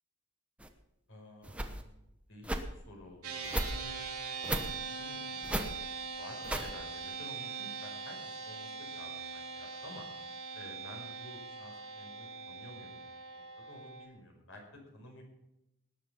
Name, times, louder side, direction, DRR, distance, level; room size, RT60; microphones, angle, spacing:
sound 1, 0.6-0.7 1.4-1.8 2.4-2.6 3.4-3.7 4.4-4.7 5.4-5.7 6.4-6.7, right 1 dB, 5° right, 1.0 m, -34 dB
voice 1, 1.1-1.8 2.3-4.1 4.5-5.7 6.0-10.1 10.5-13.0 13.6-14.6 14.9-15.2, left 1 dB, 60° left, 1 dB, 5.2 m, -52 dB
sound 2, 3.2-14.1, right 4 dB, 75° right, 3.6 m, -42 dB
19.0 x 9.3 x 5.7 m, 0.88 s
head